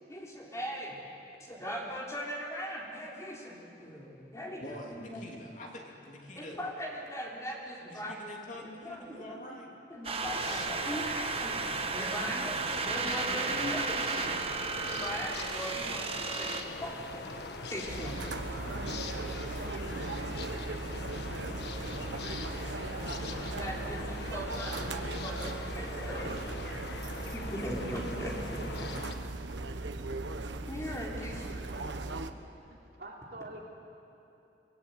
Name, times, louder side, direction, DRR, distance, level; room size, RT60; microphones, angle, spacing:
voice 1, 0.1-1.0 1.5-4.8 5.1-5.2 6.4-8.2 8.6-9.4 9.9-14.3 14.7-17.0 17.7-18.2 23.3-26.3 26.7-27.0 27.3-28.9 30.7-31.6, equal, 15° left, -3 dB, 3.8 m, -39 dB
voice 2, 4.6-6.6 7.9-9.7, left 1 dB, 45° left, 0 dB, 3.0 m, -46 dB
voice 3, 9.1-9.8 25.8-26.2 31.6-32.2 33.0-33.6, right 2 dB, 55° right, -2 dB, 3.9 m, -48 dB
sound 1, 10.0-16.6, right 4 dB, 30° right, 1.1 m, -34 dB
sound 2, 10.2-29.2, left 3 dB, 65° left, 1.5 m, -41 dB
sound 3, 17.9-32.3, right 2 dB, 80° right, 1.2 m, -38 dB
25.0 x 20.5 x 9.2 m, 2.8 s
head